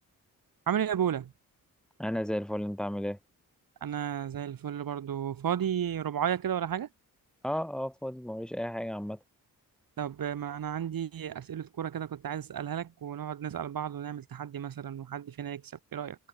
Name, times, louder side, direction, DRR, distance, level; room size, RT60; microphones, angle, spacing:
voice 1, 0.7-1.3 3.8-6.9 10.0-16.2, right 9 dB, 85° right, 5.7 m, -33 dB
voice 2, 2.0-3.2 7.4-9.2, equal, ahead, 3.1 m, -33 dB
wide cardioid pair, 120°, 34 cm